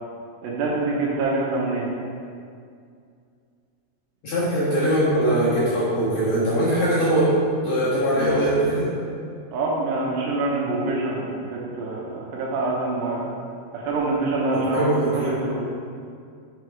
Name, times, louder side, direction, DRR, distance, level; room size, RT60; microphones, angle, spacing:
voice 1, 0.4-1.9 9.5-13.2 13.7-15.5, right 2 dB, 80° right, -3 dB, 3.0 m, -25 dB
voice 2, 4.2-7.3 7.6-8.9 14.5-15.4, right 1 dB, 55° left, -11 dB, 2.3 m, -21 dB
7.0 x 4.8 x 4.7 m, 2.3 s
omnidirectional pair, 4.9 m